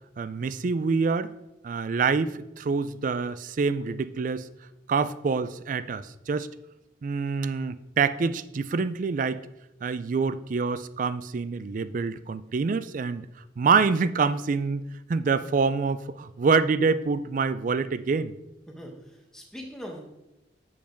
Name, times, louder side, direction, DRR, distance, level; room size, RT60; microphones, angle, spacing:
voice 1, 0.2-1.3 1.6-4.5 4.9-6.5 7.0-9.4 9.8-13.3 13.6-14.8 15.1-18.3, right 5 dB, 45° right, 15 dB, 0.3 m, -26 dB
voice 2, 18.7-20.0, equal, 5° left, 0 dB, 1.3 m, -41 dB
7.0 x 5.0 x 5.2 m, 0.92 s
head